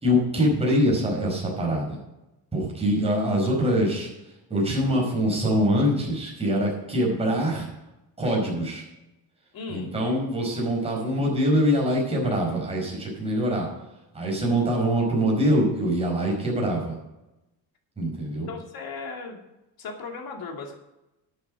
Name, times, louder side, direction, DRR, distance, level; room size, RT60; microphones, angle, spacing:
voice 1, 0.0-2.0 2.5-4.1 4.5-7.7 8.2-8.8 9.7-13.7 14.1-16.9 18.0-18.5, equal, 15° right, -2 dB, 5.1 m, -24 dB
voice 2, 9.5-10.0 18.3-19.4 19.8-20.7, left 4 dB, 50° left, 2 dB, 2.7 m, -37 dB
12.5 x 8.9 x 5.0 m, 0.95 s
cardioid pair, 170°, 44 cm